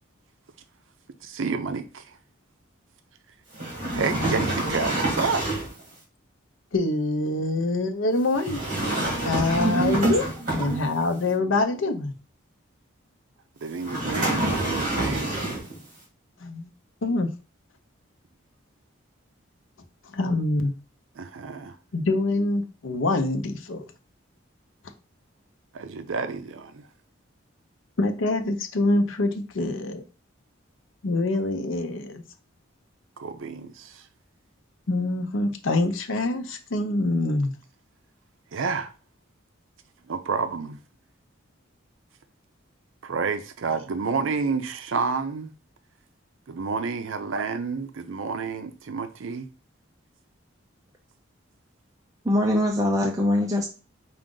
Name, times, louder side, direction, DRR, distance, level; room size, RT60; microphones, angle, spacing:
voice 1, 1.2-2.2 3.9-5.5 9.4-9.5 13.6-15.4 21.2-21.8 25.7-26.9 33.2-34.0 38.5-38.9 40.1-40.8 43.0-45.5 46.5-49.5, right 5 dB, 75° right, 0.5 m, -30 dB
sound 1, 3.5-5.8 8.3-11.1 13.8-15.8, right 1 dB, 40° right, 2.1 m, -27 dB
voice 2, 6.7-8.6 9.2-10.2 10.5-12.1 16.4-16.7 17.0-17.3 20.1-20.7 21.9-23.9 28.0-30.0 31.0-32.2 34.9-37.5, left 2 dB, 75° left, 0.7 m, -25 dB
voice 3, 9.6-10.1 10.6-10.8 52.2-53.7, equal, 15° right, 0.4 m, -23 dB
4.9 x 2.5 x 3.7 m
head